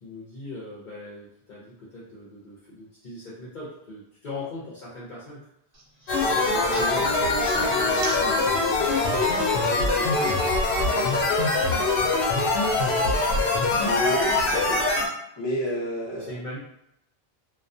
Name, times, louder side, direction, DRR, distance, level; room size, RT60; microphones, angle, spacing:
voice 1, 0.0-5.4 6.2-11.6 16.2-16.6, left 2 dB, 55° left, -7 dB, 0.7 m, -40 dB
sound 1, 5.7-9.4 9.7-11.1, right 1 dB, 45° right, 0.7 m, -40 dB
sound 2, 6.1-15.1, left 2 dB, 85° left, 0.8 m, -23 dB
voice 2, 13.8-14.8 15.4-16.4, equal, 25° left, -6 dB, 0.8 m, -29 dB
2.3 x 2.2 x 2.6 m, 0.78 s
omnidirectional pair, 1.0 m